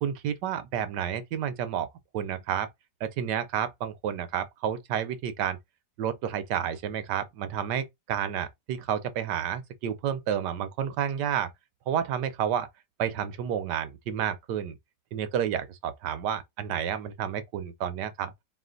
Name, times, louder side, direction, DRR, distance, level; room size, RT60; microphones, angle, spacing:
voice 1, 0.0-1.9 2.1-2.7 3.0-5.6 6.0-11.5 11.9-12.7 13.0-14.8 15.1-18.3, right 9 dB, 85° right, 1.4 m, -30 dB
4.2 x 2.4 x 3.8 m
omnidirectional pair, 1.8 m